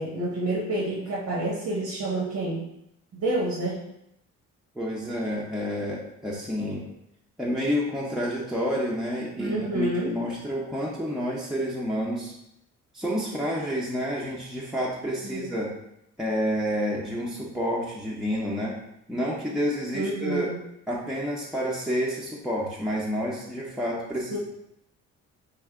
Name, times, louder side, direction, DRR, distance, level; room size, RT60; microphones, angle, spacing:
voice 1, 0.0-2.6 3.1-3.8 9.4-10.2 15.2-15.5 19.9-20.6 24.3-24.4, right 1 dB, 65° right, -5 dB, 1.0 m, -28 dB
voice 2, 4.7-6.9 7.4-12.3 12.9-15.7 16.2-18.7 19.1-20.5 20.9-24.4, equal, ahead, -5 dB, 0.6 m, -29 dB
3.4 x 2.7 x 3.6 m, 0.80 s
cardioid pair, 90°, 30 cm